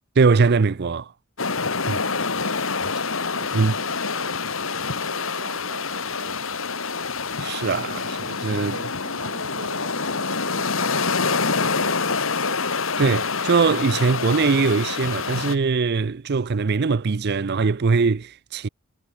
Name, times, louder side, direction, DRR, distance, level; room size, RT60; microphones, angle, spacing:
voice 1, 0.2-1.1 1.9-2.0 3.1-3.2 3.5-3.7 7.4-8.7 13.0-18.7, right 4 dB, 50° right, 0.5 m, -21 dB
sound 1, 1.4-15.5, left 4 dB, 65° left, 2.6 m, -26 dB
voice 2, 1.8-2.4 3.3-6.7 8.4-12.8, right 2 dB, 65° right, 4.6 m, -43 dB
head